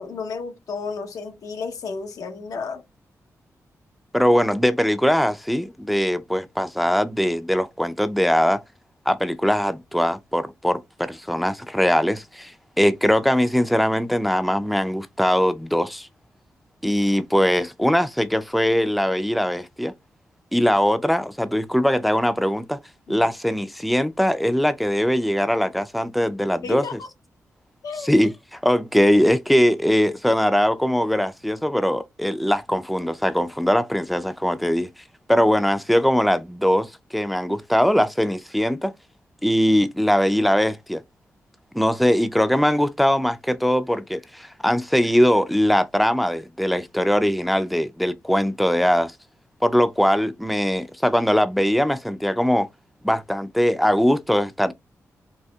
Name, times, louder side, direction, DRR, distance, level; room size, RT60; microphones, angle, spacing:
voice 1, 0.0-2.8 23.1-23.3 26.6-27.1 27.8-28.1, left 4 dB, 85° left, 0.8 m, -32 dB
voice 2, 4.1-8.6 9.1-16.1 16.8-19.9 20.5-22.8 23.1-26.9 28.0-34.9 35.3-38.9 39.4-41.0 41.7-49.1 49.6-52.7 53.0-54.7, equal, ahead, 0.4 m, -21 dB
4.3 x 2.8 x 2.3 m
wide cardioid pair, 105°, 6 cm